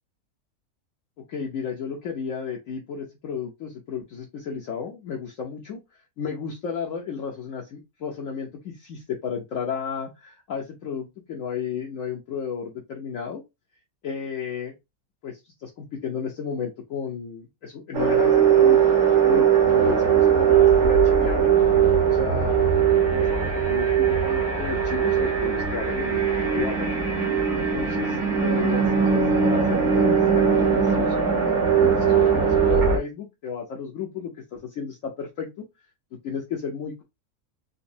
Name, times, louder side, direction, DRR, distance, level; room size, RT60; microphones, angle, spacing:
voice 1, 1.3-5.8 6.2-13.4 14.0-14.7 15.2-21.5 22.0-22.7 23.1-26.9 27.6-31.3 31.8-35.6 36.2-37.0, left 7 dB, 65° left, -1 dB, 1.1 m, -33 dB
sound 1, 17.9-33.0, right 7 dB, 55° right, 1.3 m, -20 dB
4.0 x 2.5 x 2.6 m, 0.22 s
omnidirectional pair, 1.6 m